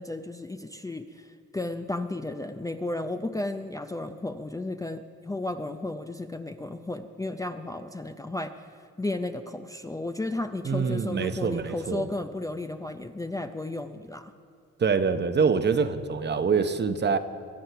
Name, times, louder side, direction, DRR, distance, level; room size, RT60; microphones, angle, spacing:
voice 1, 0.0-8.7 9.0-14.3, left 2 dB, 10° left, 0.5 m, -33 dB
voice 2, 10.6-12.1 14.8-17.2, right 5 dB, 35° right, 0.8 m, -25 dB
23.0 x 7.7 x 5.7 m
cardioid pair, 90°, 30 cm